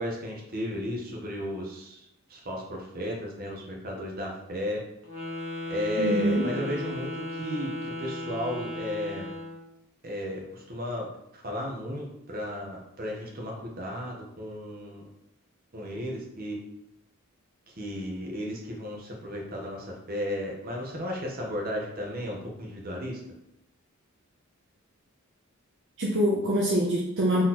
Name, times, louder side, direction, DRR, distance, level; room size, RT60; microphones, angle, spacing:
voice 1, 0.0-4.8 5.7-9.3 10.0-15.0 15.7-16.6 17.7-23.2, left 1 dB, 45° right, -1 dB, 1.0 m, -34 dB
Wind instrument woodwind instrument, 5.0-9.6, left 2 dB, 80° right, 1.4 m, -36 dB
voice 2, 6.0-6.5 26.0-27.4, right 1 dB, 60° right, -3 dB, 0.7 m, -25 dB
4.0 x 3.0 x 4.2 m, 0.79 s
head